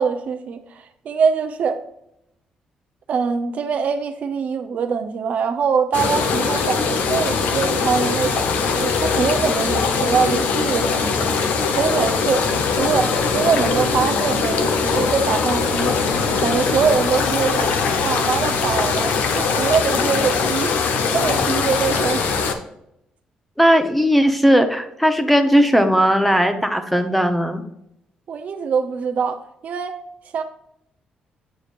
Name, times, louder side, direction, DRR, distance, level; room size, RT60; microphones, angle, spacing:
voice 1, 0.0-1.8 3.1-11.3 11.7-12.5 12.8-16.0 16.4-17.7 18.0-22.2 28.3-30.0 30.3-30.4, right 6 dB, 60° right, 0.7 m, -23 dB
sound 1, 5.9-22.5, left 5 dB, 80° left, 0.9 m, -21 dB
voice 2, 23.6-27.6, equal, 5° left, 0.8 m, -17 dB
9.0 x 4.9 x 2.5 m
cardioid pair, 105°, 3 cm